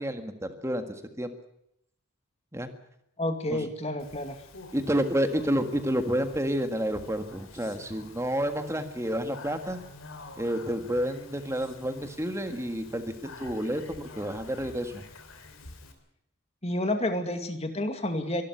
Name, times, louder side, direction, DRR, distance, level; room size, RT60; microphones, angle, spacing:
voice 1, 0.0-1.3 2.5-2.7 3.5-3.7 4.7-9.8 10.4-15.1, equal, 15° right, 7 dB, 1.7 m, -30 dB
voice 2, 3.2-4.4 16.6-18.4, left 1 dB, 30° left, 7 dB, 2.3 m, -30 dB
Speech, 4.0-15.9, left 3 dB, 65° left, 3.3 m, -48 dB
24.5 x 12.5 x 9.6 m, 0.77 s
head